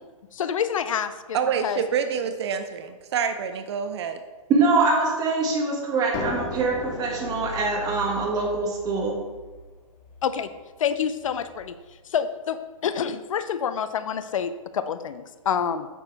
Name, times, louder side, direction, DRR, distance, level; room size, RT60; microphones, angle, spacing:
voice 1, 0.3-1.8 10.2-10.5 10.8-11.7 12.1-15.9, left 8 dB, 65° left, 12 dB, 0.6 m, -27 dB
voice 2, 1.3-4.2, right 7 dB, 50° right, 8 dB, 0.6 m, -27 dB
voice 3, 4.5-9.2, right 3 dB, 20° right, 0 dB, 1.5 m, -23 dB
sound 1, 6.1-11.7, left 2 dB, 35° left, 1.5 m, -37 dB
8.1 x 6.1 x 3.5 m, 1.3 s
hypercardioid pair, 135°, 18 cm